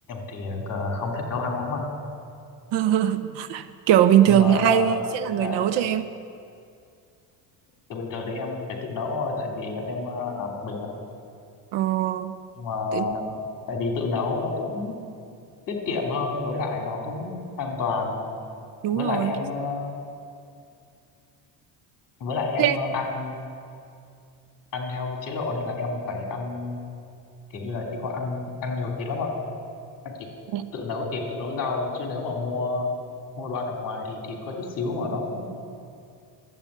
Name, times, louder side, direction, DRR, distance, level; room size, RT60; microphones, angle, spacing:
voice 1, 0.1-1.9 4.3-5.0 5.3-5.6 7.9-11.0 12.6-13.4 13.7-15.0 15.7-18.3 18.9-19.9 22.2-23.4 24.7-26.8 27.5-29.4 30.0-30.3 30.7-32.9 33.4-35.5, left 3 dB, 45° left, 1 dB, 2.9 m, -29 dB
voice 2, 2.7-6.0 11.7-12.4 12.9-13.1 18.8-19.3 22.6-22.8 30.5-30.7, right 11 dB, 70° right, 12 dB, 0.7 m, -21 dB
12.0 x 8.7 x 8.2 m, 2.4 s
cardioid pair, 125°, 43 cm